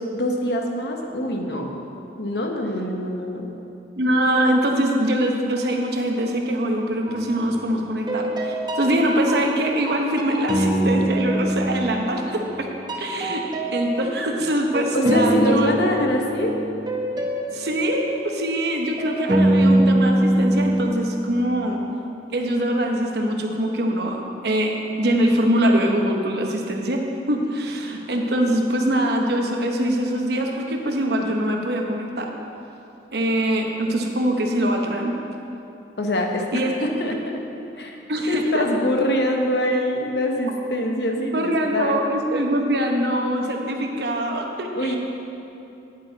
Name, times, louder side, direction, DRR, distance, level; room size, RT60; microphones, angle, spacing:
voice 1, 0.0-1.7 2.2-3.5 14.9-16.5 36.0-37.4 37.8-38.0 38.3-42.0 44.8-45.0, left 1 dB, 65° left, 2 dB, 1.0 m, -24 dB
voice 2, 4.0-12.7 13.0-13.4 13.7-15.7 17.5-21.8 22.3-27.0 27.3-32.3 33.1-35.1 36.5-36.7 38.1-38.6 41.2-45.0, right 1 dB, 65° right, 2 dB, 0.9 m, -23 dB
sound 1, 7.1-7.6 8.1-12.6 12.9-21.7, right 1 dB, 25° right, 0.8 m, -24 dB
9.4 x 8.6 x 4.0 m, 2.8 s
head